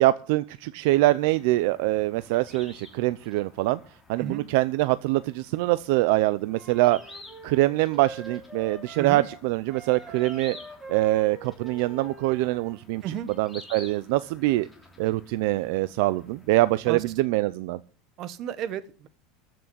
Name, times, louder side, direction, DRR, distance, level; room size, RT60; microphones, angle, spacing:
voice 1, 0.0-3.8 4.1-7.0 7.4-10.6 10.9-13.0 13.4-14.7 15.0-17.8, right 18 dB, 65° right, 15 dB, 0.6 m, -24 dB
sound 1, 0.9-17.2, left 2 dB, 5° left, 2.8 m, -51 dB
Wind instrument woodwind instrument, 6.5-9.4 9.7-12.8, right 3 dB, 10° right, 3.4 m, -44 dB
voice 2, 18.2-19.1, right 9 dB, 40° right, 14 dB, 1.2 m, -33 dB
14.0 x 6.1 x 9.9 m, 0.40 s
supercardioid pair, 165°, 0 cm